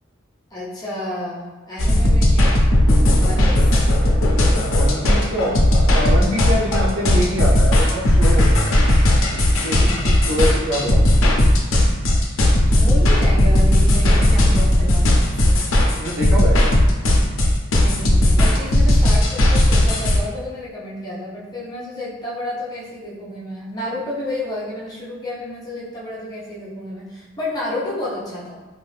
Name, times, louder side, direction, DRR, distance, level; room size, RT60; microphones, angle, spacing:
voice 1, 0.5-2.7 3.2-3.7 9.7-10.4 12.7-15.1 15.4-15.8 17.8-28.6, left 1 dB, 20° left, -8 dB, 0.7 m, -31 dB
sound 1, 1.8-20.2, left 1 dB, 85° left, 0.5 m, -16 dB
voice 2, 4.6-5.5 5.9-8.7 9.3-10.0 10.3-11.2 16.0-16.7, equal, 90° right, -3 dB, 0.6 m, -24 dB
2.5 x 2.4 x 3.2 m, 1.3 s
head